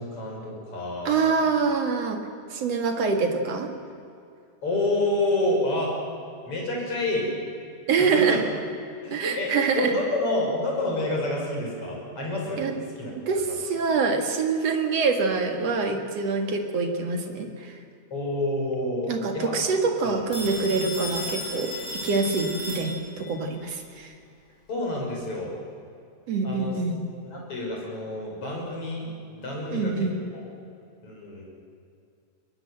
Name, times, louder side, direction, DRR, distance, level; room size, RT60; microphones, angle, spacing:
voice 1, 0.0-1.3 4.6-6.0 6.4-7.3 8.0-8.4 9.0-13.1 13.5-13.6 18.1-19.5 20.0-20.2 24.7-25.5 26.4-26.8 27.2-29.1 29.3-30.1 30.3-30.4 31.0-31.4, left 2 dB, 35° left, -2 dB, 6.6 m, -28 dB
voice 2, 1.0-2.2 2.5-3.7 7.9-8.4 9.1-9.9 12.6-12.7 13.1-17.8 19.1-21.8 22.0-24.1 26.3-27.0 29.7-30.1, right 4 dB, 50° right, 5 dB, 2.3 m, -25 dB
Telephone, 20.3-23.3, left 1 dB, 15° left, 7.6 m, -34 dB
22.5 x 20.5 x 7.8 m, 2.5 s
omnidirectional pair, 4.8 m